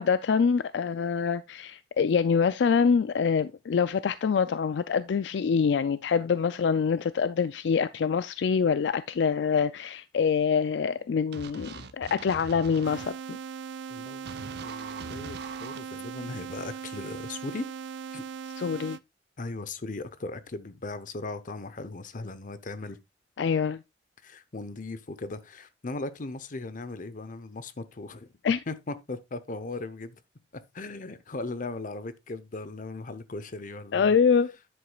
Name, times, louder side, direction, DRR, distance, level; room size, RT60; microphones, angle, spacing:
voice 1, 0.0-13.4 18.6-19.0 23.4-23.8 28.4-28.6 33.9-34.5, left 6 dB, 70° left, 0.4 m, -25 dB
sound 1, 11.3-13.1 14.3-15.8, right 4 dB, 65° right, 0.8 m, -42 dB
sound 2, 12.8-19.0, right 6 dB, 90° right, 0.4 m, -39 dB
voice 2, 13.9-17.7 18.1-18.2 19.4-23.0 24.2-28.3 28.7-30.2 30.5-34.2, left 3 dB, 50° left, 0.8 m, -38 dB
9.8 x 8.0 x 2.3 m
head